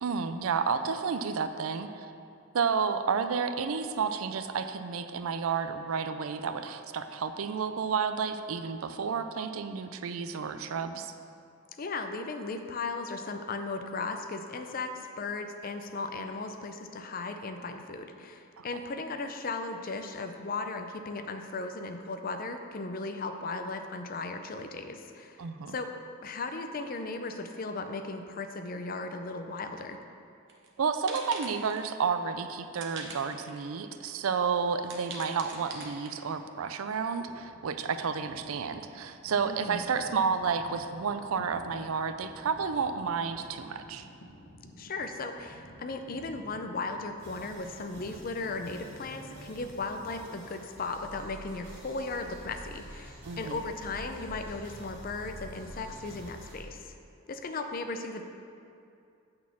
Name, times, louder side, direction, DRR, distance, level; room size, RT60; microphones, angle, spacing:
voice 1, 0.0-2.1 2.5-11.1 18.6-18.7 25.4-25.7 30.8-44.1 53.2-53.6, right 5 dB, 80° right, 9 dB, 0.4 m, -31 dB
voice 2, 11.8-25.4 25.7-25.9 26.2-30.0 39.4-39.8 44.8-56.9 57.3-58.2, left 3 dB, 40° left, 6 dB, 0.5 m, -36 dB
sound 1, 30.5-30.7 31.1-31.9 32.8-33.7 34.1-34.2 34.8-36.4, right 4 dB, 60° right, 1.0 m, -43 dB
sound 2, 37.2-51.3, equal, 75° left, 1.6 m, -52 dB
sound 3, 47.2-56.6, equal, 10° right, 2.0 m, -47 dB
8.6 x 4.2 x 7.0 m, 2.5 s
head